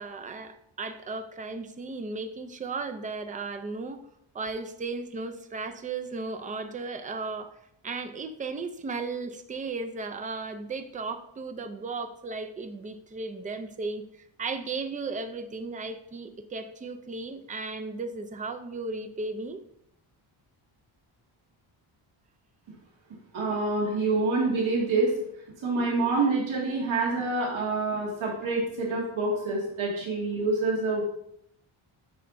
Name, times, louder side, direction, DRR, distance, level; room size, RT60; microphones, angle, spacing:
voice 1, 0.0-4.0 4.3-7.5 7.8-19.6, right 3 dB, 20° right, 7 dB, 0.3 m, -35 dB
voice 2, 23.3-25.1 25.6-31.0, right 3 dB, 70° right, -4 dB, 2.1 m, -27 dB
9.3 x 5.6 x 2.6 m, 0.74 s
wide cardioid pair, 160°, 49 cm